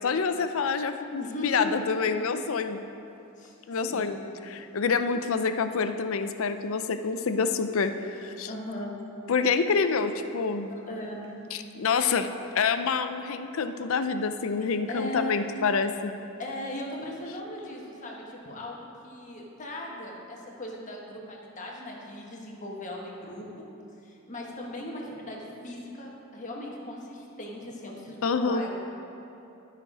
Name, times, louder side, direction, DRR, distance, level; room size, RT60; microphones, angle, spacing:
voice 1, 0.0-2.8 3.7-4.2 4.5-8.5 9.3-10.7 11.5-12.3 12.5-16.2 28.2-28.6, left 5 dB, 65° left, 9 dB, 0.5 m, -27 dB
voice 2, 1.2-1.8 2.1-2.2 3.4-3.5 3.8-4.2 8.5-8.9 10.1-10.2 10.7-11.3 14.9-15.3 16.4-23.7 24.0-28.7, left 1 dB, 35° left, -1 dB, 1.3 m, -38 dB
12.5 x 5.9 x 4.9 m, 2.9 s
head